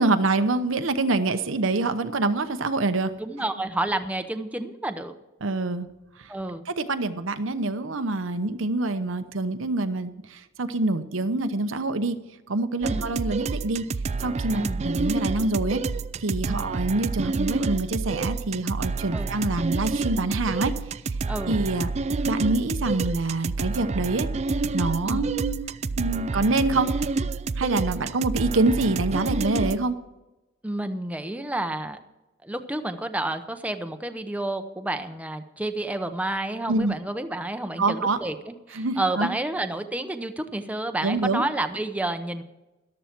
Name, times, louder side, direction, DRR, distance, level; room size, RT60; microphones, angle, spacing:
voice 1, 0.0-3.1 5.4-5.9 6.2-6.3 6.7-12.2 12.5-13.8 14.2-15.8 16.2-20.7 21.5-21.9 22.3-24.3 24.7-25.6 26.0-26.9 27.6-30.0 36.7-36.9 37.8-38.2 38.7-39.4 41.0-41.4, right 2 dB, 75° right, 10 dB, 0.9 m, -25 dB
voice 2, 3.2-5.1 6.3-6.6 12.9-13.0 14.5-14.8 16.5-16.7 19.1-19.3 21.3-21.6 25.0-25.2 30.6-32.0 32.4-42.4, right 1 dB, 5° right, 8 dB, 0.7 m, -30 dB
sound 1, 12.8-29.8, right 4 dB, 35° right, 0.4 m, -29 dB
14.0 x 11.5 x 4.5 m, 1.0 s
head